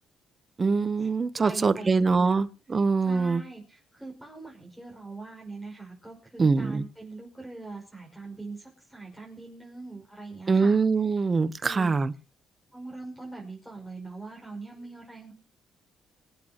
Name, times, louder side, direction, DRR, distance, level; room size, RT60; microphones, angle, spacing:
voice 1, 0.6-3.4 6.4-6.8 10.5-12.1, right 4 dB, 35° right, 1.0 m, -23 dB
voice 2, 1.4-2.4 3.0-10.8 11.6-11.9 12.7-15.3, right 3 dB, 5° right, 5.7 m, -42 dB
26.0 x 8.6 x 3.0 m
cardioid pair, 90°, 0 cm